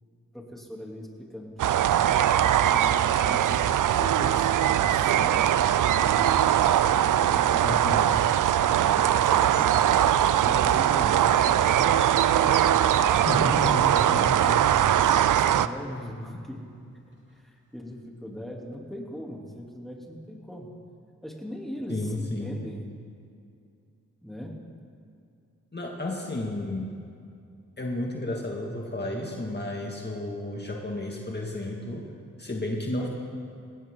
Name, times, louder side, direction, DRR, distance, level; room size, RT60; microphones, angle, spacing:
voice 1, 0.3-1.8 2.4-6.4 6.8-8.1 8.8-10.0 10.4-11.9 12.3-14.4 15.3-16.7 17.3-20.7 21.2-22.9 24.2-24.6, equal, ahead, -1 dB, 3.2 m, -40 dB
sound 1, 1.6-15.7, right 11 dB, 80° right, 0.5 m, -21 dB
voice 2, 7.6-8.1 13.3-14.6 21.9-22.6 25.7-26.9 27.8-32.1 32.4-33.1, left 1 dB, 35° left, -1 dB, 2.2 m, -32 dB
sound 2, 10.3-17.2, right 2 dB, 40° right, 3.1 m, -44 dB
19.5 x 17.5 x 3.9 m, 2.5 s
cardioid pair, 45°, 31 cm